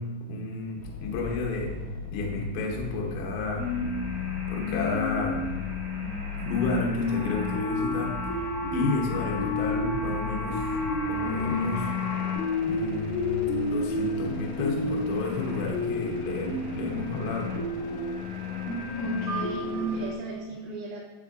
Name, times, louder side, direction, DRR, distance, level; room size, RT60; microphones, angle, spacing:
voice 1, 0.0-1.7 2.1-3.7 4.5-5.4 6.5-11.9 12.6-17.5, left 3 dB, 75° left, -1 dB, 2.3 m, -31 dB
sound 1, 0.8-20.2, left 6 dB, 90° left, 2.5 m, -40 dB
sound 2, 3.6-20.0, left 2 dB, 55° right, 2.0 m, -31 dB
sound 3, 7.1-12.3, left 2 dB, 60° left, 1.5 m, -37 dB
voice 2, 19.0-21.0, right 3 dB, 90° right, -7 dB, 3.6 m, -34 dB
9.7 x 4.4 x 2.5 m, 1.4 s
omnidirectional pair, 5.5 m